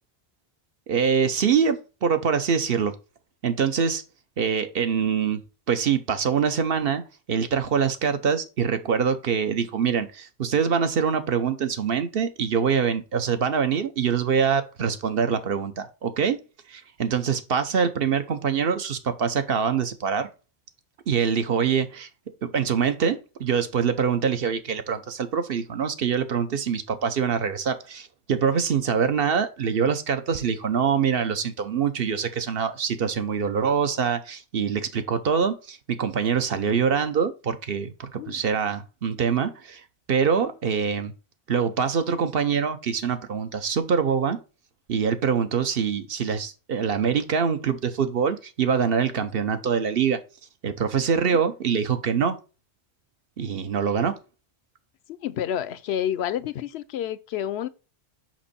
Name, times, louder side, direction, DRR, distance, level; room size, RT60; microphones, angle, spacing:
voice 1, 0.9-2.9 3.4-4.0 4.4-5.4 5.7-7.0 7.3-16.4 16.7-20.3 21.1-22.1 22.4-39.8 40.1-41.1 41.5-44.4 44.9-50.2 50.6-52.4 53.4-54.2, right 6 dB, 60° right, 1.0 m, -24 dB
voice 2, 55.2-57.7, left 10 dB, 75° left, 0.8 m, -29 dB
6.0 x 5.2 x 4.2 m
omnidirectional pair, 1.1 m